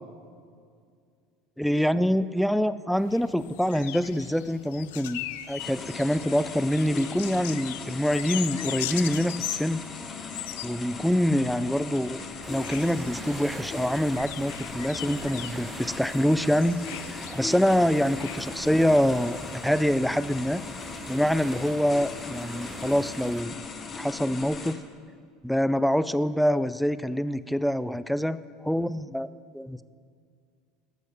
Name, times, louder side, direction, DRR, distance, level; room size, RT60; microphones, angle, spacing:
voice 1, 1.6-9.8 10.6-12.2 12.5-16.8 17.1-20.6 21.1-23.6 24.0-24.8 25.4-29.3 29.5-29.8, equal, ahead, 15 dB, 0.4 m, -25 dB
sound 1, 3.0-19.8, left 14 dB, 70° left, 0.4 m, -40 dB
sound 2, 5.6-24.7, left 4 dB, 35° left, 0.9 m, -39 dB
sound 3, 12.4-23.4, right 3 dB, 20° right, 0.8 m, -43 dB
9.6 x 6.3 x 6.9 m, 2.1 s
hypercardioid pair, 70°, 0 cm